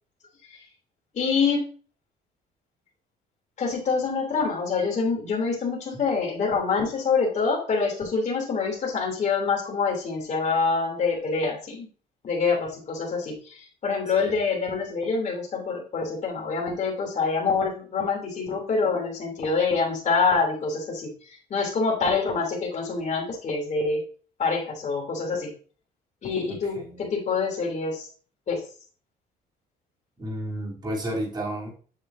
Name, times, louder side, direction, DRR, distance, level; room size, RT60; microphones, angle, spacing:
voice 1, 1.1-1.6 3.6-11.9 12.2-21.1 21.5-24.0 24.4-25.5 26.2-28.1 28.5-28.6, left 4 dB, 45° left, 0 dB, 3.2 m, -26 dB
voice 2, 30.2-31.7, right 1 dB, 25° right, -4 dB, 3.3 m, -31 dB
8.7 x 6.9 x 2.7 m, 0.40 s
cardioid pair, 110°, 17 cm